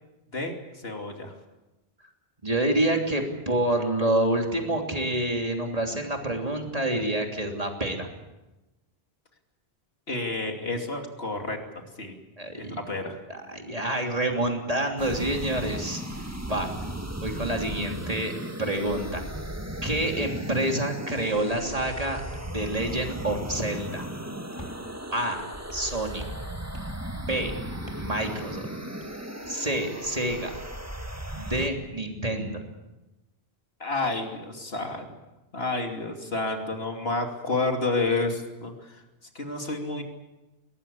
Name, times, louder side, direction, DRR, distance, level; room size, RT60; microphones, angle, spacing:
voice 1, 0.8-1.3 10.1-12.1 12.6-13.2 33.8-35.1 35.5-39.0 39.3-40.0, left 3 dB, 70° left, 3 dB, 3.1 m, -30 dB
voice 2, 2.4-8.1 12.4-12.8 13.3-16.7 17.2-19.2 19.8-22.2 22.5-24.1 25.1-25.4 25.7-26.2 27.1-27.5 28.0-28.7 29.5-30.5 31.4-32.6, right 1 dB, 35° right, 2 dB, 3.2 m, -28 dB
sound 1, 15.0-31.7, right 1 dB, 15° right, 1.9 m, -36 dB
sound 2, 21.8-22.0 22.3-23.1 23.4-23.7 24.0-24.2 24.6-24.8 25.1-25.2 25.7-25.9 26.2-26.5 26.7-27.0 27.3-27.5 27.9-28.1 28.4-28.6 29.0-29.9, equal, 25° left, 3.2 m, -47 dB
22.0 x 19.5 x 8.6 m, 1.0 s
omnidirectional pair, 1.1 m